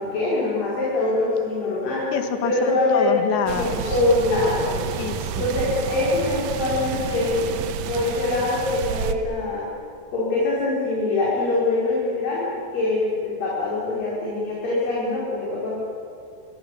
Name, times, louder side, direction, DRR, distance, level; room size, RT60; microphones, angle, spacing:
voice 1, 0.0-2.1 2.4-3.1 3.5-5.0 5.4-9.7 10.1-12.5 12.7-15.8, left 2 dB, 55° left, -7 dB, 6.5 m, -23 dB
voice 2, 2.1-4.0 5.0-5.5, left 7 dB, 85° left, 7 dB, 3.9 m, -27 dB
sound 1, 3.5-9.1, right 8 dB, 90° right, 1.6 m, -30 dB
29.0 x 22.5 x 7.1 m, 2.4 s
omnidirectional pair, 4.9 m